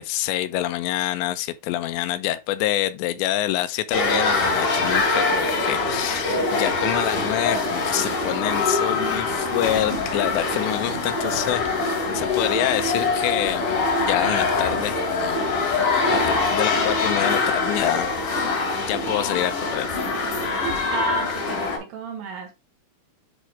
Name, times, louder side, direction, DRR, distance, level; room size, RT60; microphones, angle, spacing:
voice 1, 0.0-13.6 14.0-15.4 15.7-18.1 18.8-19.9, left 13 dB, 85° left, 2.9 m, -27 dB
sound 1, 3.9-21.8, left 3 dB, 50° left, 4.0 m, -24 dB
voice 2, 9.4-9.9 20.9-22.5, right 6 dB, 70° right, 3.2 m, -33 dB
10.5 x 3.7 x 3.2 m
omnidirectional pair, 5.1 m